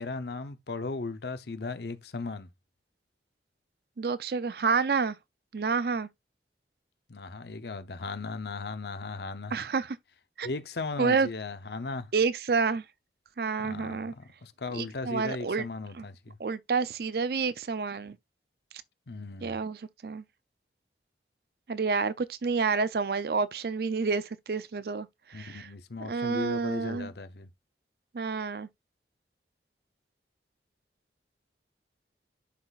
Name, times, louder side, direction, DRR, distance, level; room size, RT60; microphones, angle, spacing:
voice 1, 0.0-2.5 7.1-9.5 10.4-12.1 13.6-16.4 19.1-19.6 25.3-27.5, left 3 dB, 70° left, 0.8 m, -37 dB
voice 2, 4.0-5.2 5.5-6.1 9.5-10.0 10.4-10.5 11.0-11.3 12.1-12.8 13.4-14.1 14.7-15.6 15.9-16.0 16.4-18.2 19.4-20.2 21.7-25.7 26.0-27.1 28.1-28.7, right 5 dB, 60° right, 0.5 m, -29 dB
11.5 x 4.0 x 2.4 m
head